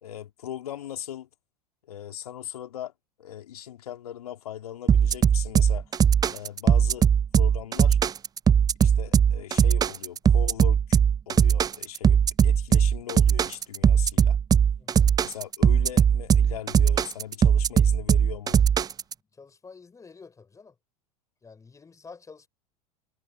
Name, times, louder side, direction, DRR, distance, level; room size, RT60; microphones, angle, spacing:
voice 1, 0.0-1.3 1.9-2.9 3.2-5.9 6.3-7.1 7.3-8.0 8.8-11.0 11.3-14.4 15.2-18.6, left 11 dB, 65° left, 3.7 m, -39 dB
sound 1, 4.9-19.1, right 8 dB, 20° right, 0.7 m, -20 dB
voice 2, 14.8-15.2 19.3-20.7 21.4-22.5, left 4 dB, 15° left, 3.9 m, -49 dB
figure-of-eight pair, 85°, 21 cm